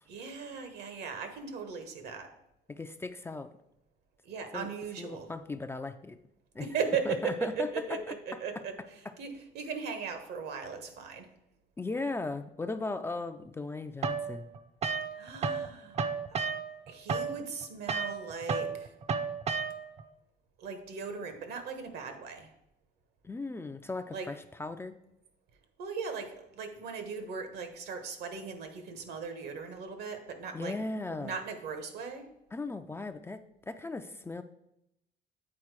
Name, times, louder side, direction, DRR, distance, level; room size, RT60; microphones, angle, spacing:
voice 1, 0.1-2.3 4.2-5.3 6.6-8.8 9.2-11.3 15.1-16.0 16.9-18.9 20.6-22.5 24.1-24.3 25.8-30.8 31.1-32.3, right 5 dB, 75° right, 8 dB, 1.2 m, -38 dB
voice 2, 2.7-3.5 4.5-4.7 5.0-6.2 6.5-6.7 7.1-8.0 11.8-14.5 23.2-24.9 30.5-31.4 32.5-34.4, left 3 dB, 15° left, 8 dB, 0.3 m, -37 dB
sound 1, 14.0-15.7 15.9-20.0, right 5 dB, 40° right, 0.6 m, -33 dB
8.6 x 4.0 x 4.7 m, 0.82 s
cardioid pair, 110°, 17 cm